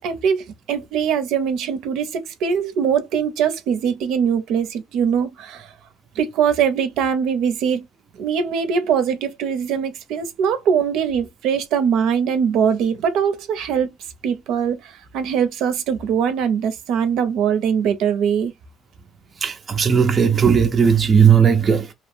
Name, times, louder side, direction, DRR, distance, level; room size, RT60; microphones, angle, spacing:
voice 1, 0.0-5.7 6.2-7.8 8.2-13.9 14.2-18.5, right 7 dB, 75° right, 0.6 m, -22 dB
voice 2, 19.4-21.9, right 7 dB, 30° right, 0.4 m, -16 dB
2.8 x 2.0 x 3.1 m
cardioid pair, 120°, 0 cm